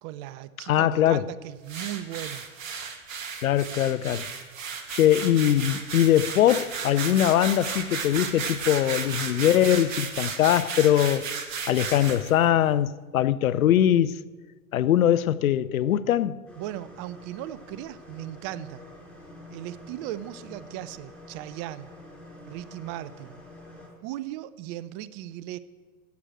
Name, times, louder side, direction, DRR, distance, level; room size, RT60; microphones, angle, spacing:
voice 1, 0.0-2.5 16.6-18.8 19.5-21.9 22.5-23.4 24.0-25.6, right 13 dB, 35° right, 0.5 m, -37 dB
voice 2, 0.7-1.3 3.4-4.3 4.9-11.3 11.7-14.2 14.7-16.4, left 11 dB, 75° left, 0.6 m, -22 dB
sound 1, 1.7-12.3, right 6 dB, 70° right, 1.9 m, -34 dB
sound 2, 16.5-23.9, left 1 dB, ahead, 4.8 m, -47 dB
14.0 x 6.3 x 8.9 m
hypercardioid pair, 105°, 41 cm